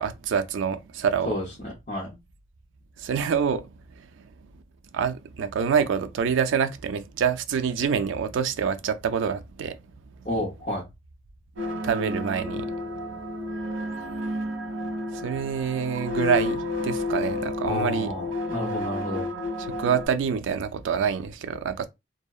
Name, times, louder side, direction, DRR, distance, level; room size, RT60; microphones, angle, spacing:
voice 1, 0.0-1.3 3.0-3.7 4.0-4.3 4.9-9.8 11.8-12.7 15.1-18.1 19.8-21.9, right 7 dB, 70° right, 0.4 m, -26 dB
voice 2, 1.2-2.1 10.2-10.8 17.6-19.3, left 1 dB, 40° left, 0.6 m, -30 dB
sound 1, 11.6-20.1, left 2 dB, 90° right, 0.9 m, -31 dB
2.7 x 2.0 x 2.3 m
head